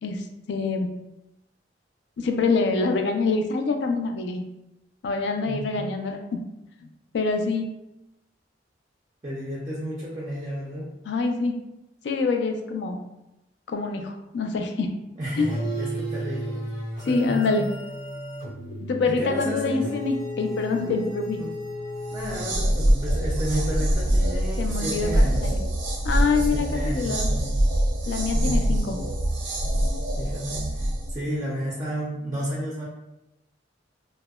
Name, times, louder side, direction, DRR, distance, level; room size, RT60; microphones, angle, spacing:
voice 1, 0.0-0.9 2.2-4.4 5.0-6.4 7.1-7.7 11.1-11.5 12.0-13.0 13.7-14.9 15.4-15.5 17.1-17.7 18.8-21.4 24.6-25.6 26.0-27.3 28.1-29.0, left 4 dB, 65° left, 5 dB, 0.3 m, -25 dB
voice 2, 5.5-5.9 9.2-10.9 15.1-16.6 17.0-17.6 19.0-19.9 20.8-21.1 21.4-21.5 22.1-25.6 26.5-27.5 28.3-28.6 30.2-32.8, equal, 20° right, -5 dB, 0.4 m, -32 dB
sound 1, 15.4-22.8, equal, 90° left, 1.0 m, -34 dB
sound 2, 22.1-31.1, right 1 dB, 90° right, 0.5 m, -24 dB
2.7 x 2.0 x 2.2 m, 0.92 s
head